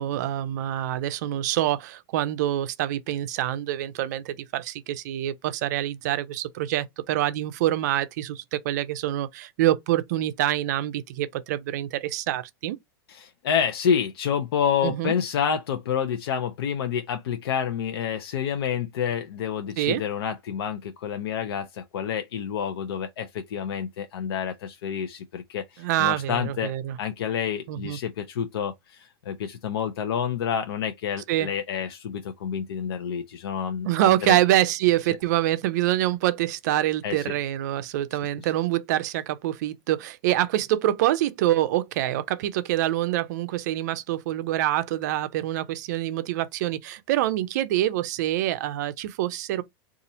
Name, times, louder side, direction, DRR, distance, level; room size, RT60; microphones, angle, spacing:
voice 1, 0.0-12.8 14.8-15.1 19.8-20.0 25.8-27.0 27.7-28.0 31.3-31.5 33.9-49.6, right 13 dB, 45° right, 0.4 m, -26 dB
voice 2, 13.1-26.7 27.0-34.4 37.0-37.3, left 8 dB, 80° left, 0.6 m, -28 dB
2.7 x 2.4 x 4.1 m
supercardioid pair, 175°, 13 cm